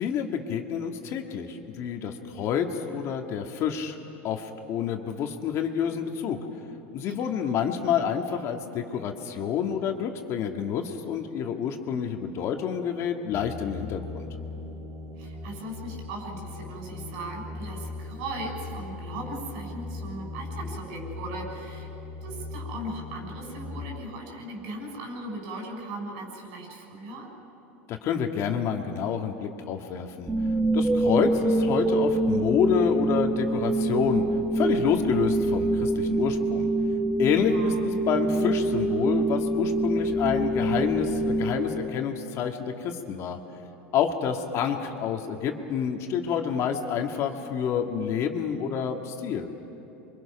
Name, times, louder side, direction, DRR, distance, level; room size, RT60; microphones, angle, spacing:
voice 1, 0.0-4.0 4.2-6.4 6.9-14.3 27.9-30.3 30.7-34.2 34.5-36.7 37.2-43.4 43.9-49.5, left 7 dB, 45° left, 4 dB, 1.8 m, -28 dB
voice 2, 7.0-7.4 15.2-21.9 22.2-27.3 37.4-38.1, right 1 dB, 70° right, 0 dB, 6.4 m, -38 dB
sound 1, 13.3-23.9, left 3 dB, 35° right, 4.3 m, -39 dB
sound 2, 30.3-42.3, right 2 dB, 15° right, 1.0 m, -25 dB
27.5 x 24.0 x 5.8 m, 3.0 s
supercardioid pair, 125°, 7 cm